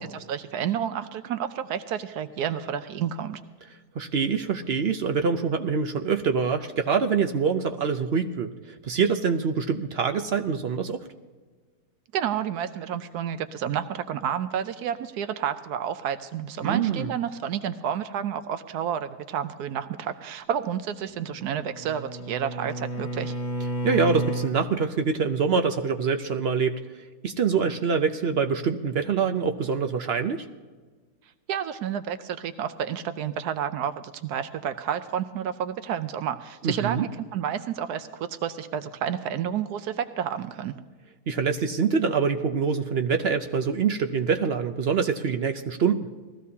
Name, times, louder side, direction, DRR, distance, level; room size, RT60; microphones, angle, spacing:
voice 1, 0.0-3.4 12.1-23.4 31.5-40.7, right 9 dB, 85° right, 11 dB, 1.2 m, -30 dB
voice 2, 3.9-11.0 16.6-17.1 23.8-26.8 27.2-30.5 36.6-37.1 41.3-46.1, right 5 dB, 60° right, 6 dB, 0.7 m, -25 dB
Bowed string instrument, 21.2-24.6, right 1 dB, 70° left, 1.9 m, -31 dB
20.0 x 15.0 x 2.8 m, 1.4 s
omnidirectional pair, 1.7 m